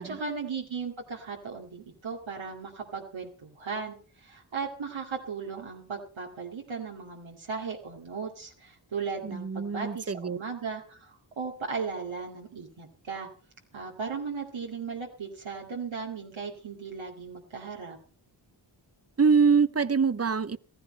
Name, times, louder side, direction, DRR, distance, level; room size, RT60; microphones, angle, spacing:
voice 1, 0.0-13.3 13.7-18.0, right 5 dB, 70° right, 2.3 m, -37 dB
voice 2, 9.2-10.4 19.2-20.6, right 5 dB, 30° right, 0.7 m, -24 dB
15.5 x 14.0 x 4.3 m
cardioid pair, 45°, 48 cm